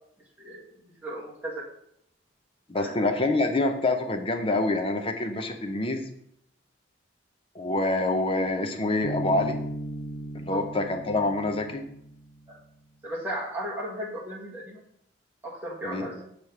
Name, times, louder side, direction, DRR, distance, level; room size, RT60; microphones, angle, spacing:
voice 1, 1.0-1.7 2.7-3.0 10.5-10.6 12.5-12.6 13.0-14.8 15.4-16.2, right 1 dB, 10° right, -5 dB, 1.5 m, -35 dB
voice 2, 2.7-6.1 7.5-9.6 10.3-11.8 15.8-16.0, left 2 dB, 30° left, 5 dB, 0.7 m, -26 dB
Bass guitar, 9.0-12.5, equal, 60° left, 0.9 m, -36 dB
6.2 x 3.5 x 5.7 m, 0.73 s
head